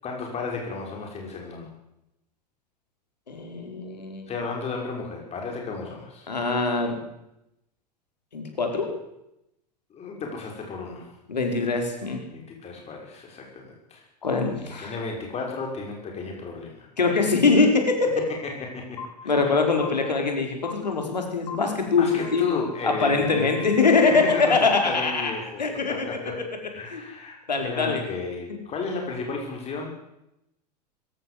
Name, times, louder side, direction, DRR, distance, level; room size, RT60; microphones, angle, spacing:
voice 1, 0.0-1.7 4.3-6.3 9.9-11.2 12.3-14.0 14.8-16.9 18.7-19.5 22.0-23.5 24.2-25.6 25.9-26.4 26.7-29.9, left 4 dB, 30° left, 1 dB, 6.1 m, -33 dB
voice 2, 3.3-4.3 6.3-7.0 8.3-8.9 11.3-12.2 14.2-14.9 17.0-18.0 19.2-22.4 22.8-25.3 25.6-26.2 26.9-27.0 27.5-28.0, left 4 dB, 80° left, 4 dB, 5.0 m, -23 dB
sound 1, 19.0-19.1 19.8-19.9 20.6-20.7 21.5-21.6 22.2-24.3, left 6 dB, 60° left, 4.9 m, -40 dB
21.5 x 17.0 x 8.0 m, 0.85 s
figure-of-eight pair, 85°, 21 cm